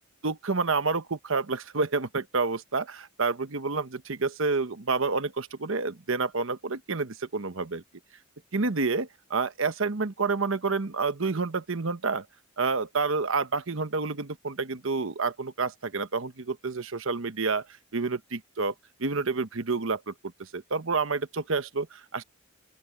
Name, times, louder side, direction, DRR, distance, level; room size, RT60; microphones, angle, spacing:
voice 1, 0.2-7.8 8.5-12.3 12.6-17.7 17.9-18.7 19.0-20.1 20.4-22.2, right 4 dB, 65° right, 1.1 m, -29 dB
open air
head